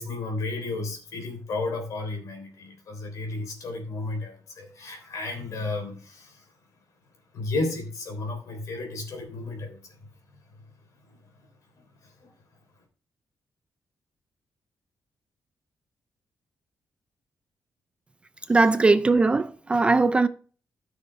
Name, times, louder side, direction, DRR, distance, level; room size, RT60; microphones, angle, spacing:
voice 1, 0.0-6.5 7.3-10.0 11.1-11.2 11.7-12.3, left 2 dB, 65° left, 3.4 m, -33 dB
voice 2, 18.5-20.3, right 3 dB, 20° right, 0.3 m, -20 dB
13.5 x 6.4 x 3.2 m
wide cardioid pair, 165°, 6 cm